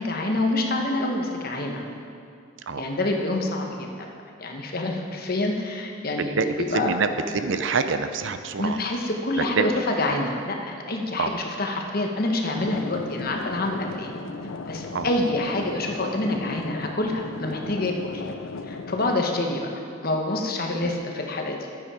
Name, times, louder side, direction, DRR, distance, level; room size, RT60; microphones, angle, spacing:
voice 1, 0.0-1.8 2.7-4.1 4.4-6.3 6.7-6.9 8.6-14.1 14.7-18.2 18.7-19.7 20.0-21.6, left 2 dB, 45° left, 2 dB, 1.1 m, -27 dB
voice 2, 6.3-8.8 9.4-9.7 11.2-11.4 14.9-15.1 17.6-17.7 20.8-20.9, right 4 dB, 60° right, 9 dB, 0.5 m, -26 dB
sound 1, 12.6-19.2, left 3 dB, 65° left, 0.5 m, -36 dB
11.0 x 8.6 x 4.9 m, 2.4 s
head